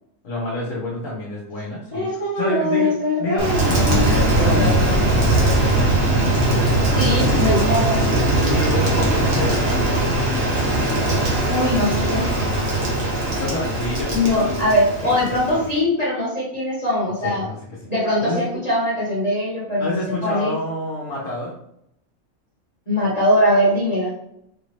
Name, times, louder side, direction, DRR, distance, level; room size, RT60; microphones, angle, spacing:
voice 1, 0.2-2.9 3.2-6.2 6.6-7.2 8.4-10.2 13.4-14.7 15.0-15.7 17.2-17.9 18.2-18.4 19.8-21.5, left 2 dB, 70° left, -4 dB, 1.3 m, -28 dB
voice 2, 1.9-4.7 6.9-8.0 11.5-12.3 14.1-17.4 17.9-20.5 22.9-24.1, left 1 dB, 30° left, -7 dB, 1.5 m, -21 dB
Rain, 3.4-15.8, right 2 dB, 50° right, 1.3 m, -20 dB
4.5 x 2.7 x 3.2 m, 0.76 s
omnidirectional pair, 1.4 m